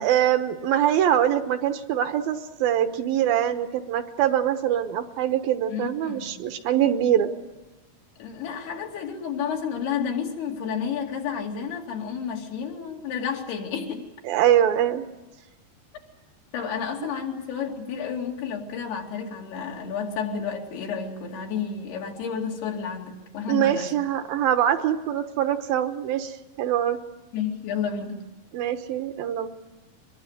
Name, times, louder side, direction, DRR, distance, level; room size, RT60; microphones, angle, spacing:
voice 1, 0.0-7.3 14.2-15.0 23.5-27.0 28.5-29.5, right 10 dB, 75° right, 9 dB, 2.7 m, -23 dB
voice 2, 5.7-6.4 8.2-14.1 16.5-23.9 27.3-28.2, left 6 dB, 85° left, 1 dB, 4.6 m, -31 dB
24.0 x 21.5 x 8.1 m, 1.1 s
omnidirectional pair, 4.5 m